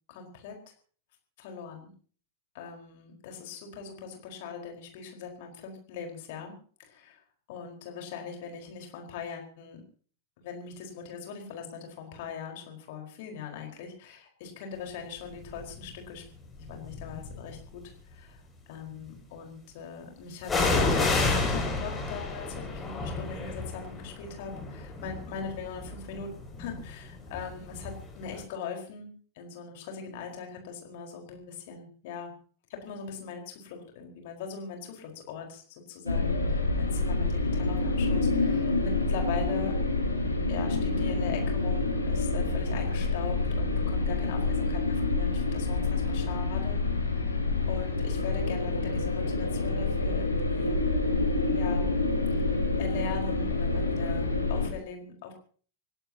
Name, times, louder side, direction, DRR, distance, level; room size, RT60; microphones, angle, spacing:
voice 1, 0.1-0.6 1.4-1.9 2.5-6.5 6.8-7.2 7.5-9.8 10.4-16.2 16.7-17.8 18.1-26.3 26.6-29.1 29.4-32.3 32.7-39.7 40.5-46.8 47.1-50.8 51.5-51.9 52.3-55.3, left 6 dB, 50° left, 3 dB, 4.7 m, -41 dB
sound 1, 15.5-15.9 16.6-17.6 20.5-28.1 28.4-28.5, left 3 dB, 15° left, 6.8 m, -30 dB
sound 2, 36.1-54.7, left 3 dB, 85° left, 4.4 m, -27 dB
27.0 x 16.5 x 2.9 m, 0.43 s
figure-of-eight pair, 90°, 0 cm